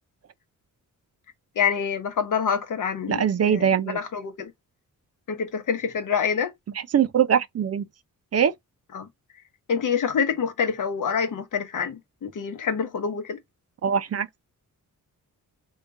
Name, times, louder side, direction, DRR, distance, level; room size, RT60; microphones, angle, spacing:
voice 1, 1.6-4.5 5.3-6.5 8.9-9.1 9.7-13.4, left 6 dB, 60° left, 0.9 m, -26 dB
voice 2, 3.1-4.0 6.9-7.9 8.3-8.5 13.8-14.3, right 8 dB, 45° right, 0.5 m, -22 dB
3.6 x 2.3 x 3.9 m
wide cardioid pair, 140°, 34 cm